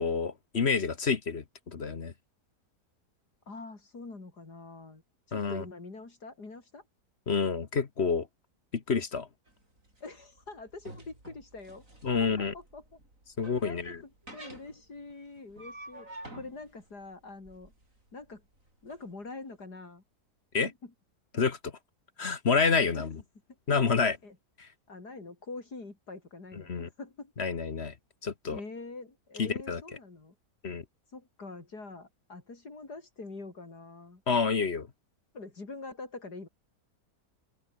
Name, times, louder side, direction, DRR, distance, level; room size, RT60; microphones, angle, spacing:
voice 1, 0.0-2.1 5.3-5.6 7.3-8.3 8.7-9.3 12.0-12.5 13.4-14.0 20.5-20.7 21.3-21.6 22.2-23.1 23.7-24.2 24.6-24.7 26.7-26.9 27.4-27.9 28.2-28.6 29.4-29.8 30.6-30.8 34.3-34.9, left 5 dB, 45° left, 1.4 m, -28 dB
voice 2, 3.5-5.0 5.3-6.8 10.0-12.8 13.6-16.1 16.3-17.7 18.1-18.4 18.8-20.0 20.6-20.9 22.9-23.1 24.0-24.4 24.9-27.3 28.5-30.3 31.1-34.2 35.3-36.5, left 3 dB, 80° left, 4.8 m, -45 dB
sound 1, 9.5-19.0, right 1 dB, 50° right, 8.6 m, -50 dB
open air
omnidirectional pair, 1.7 m